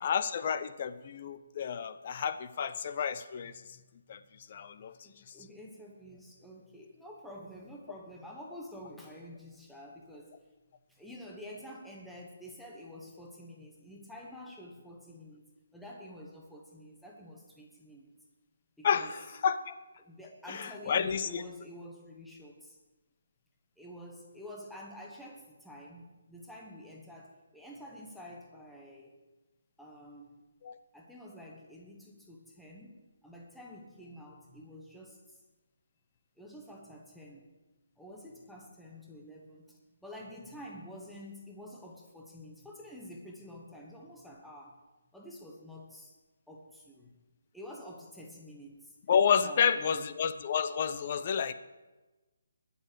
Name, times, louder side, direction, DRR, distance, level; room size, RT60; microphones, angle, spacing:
voice 1, 0.0-3.5 4.1-4.2 4.5-4.9 18.8-19.7 20.5-21.4 30.6-30.8 49.1-51.5, left 7 dB, 30° left, 12 dB, 0.6 m, -30 dB
voice 2, 3.4-4.7 5.0-10.4 10.9-15.4 15.7-18.1 18.8-19.1 20.0-22.8 23.8-29.1 29.8-30.5 30.9-35.4 36.4-37.5 38.0-44.8 45.1-46.2 46.5-47.1 47.5-49.0 49.4-50.1, equal, ahead, -3 dB, 1.0 m, -49 dB
21.0 x 7.1 x 5.0 m, 1.2 s
hypercardioid pair, 175°, 0 cm